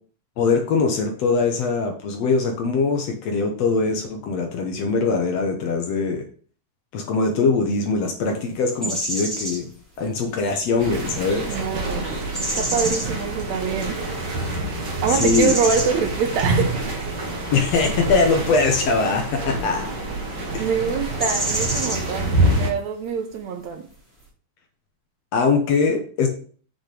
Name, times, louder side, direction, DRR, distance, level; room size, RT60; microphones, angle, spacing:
voice 1, 0.4-6.2 6.9-9.7 10.0-11.5 15.1-15.6 17.5-19.8 20.5-20.7 25.3-26.3, left 4 dB, 65° left, 3 dB, 1.7 m, -22 dB
sound 1, 8.8-9.6 10.5-10.8 11.3-11.6 12.0-13.1 15.1-15.9 21.2-22.0, right 1 dB, ahead, 3.7 m, -27 dB
sound 2, 10.8-22.7, right 2 dB, 55° right, 1.2 m, -26 dB
voice 2, 11.5-14.0 15.0-17.1 20.6-23.8, right 6 dB, 70° right, 6 dB, 1.8 m, -25 dB
8.1 x 6.5 x 3.4 m, 0.43 s
omnidirectional pair, 4.0 m